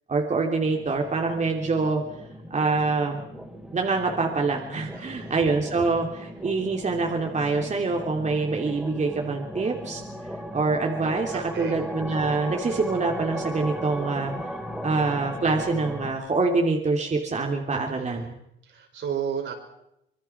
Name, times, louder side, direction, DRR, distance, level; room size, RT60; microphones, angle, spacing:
voice 1, 0.1-2.0 2.5-3.2 3.7-10.0 10.5-14.3 14.8-18.4, right 3 dB, 35° right, 2 dB, 3.1 m, -25 dB
sound 1, 0.5-16.1, equal, ahead, 4.3 m, -37 dB
voice 2, 4.9-5.4 11.3-11.8 17.7-18.2 18.7-19.5, right 7 dB, 70° right, 2 dB, 5.8 m, -33 dB
25.5 x 22.0 x 6.0 m, 0.82 s
cardioid pair, 90°, 20 cm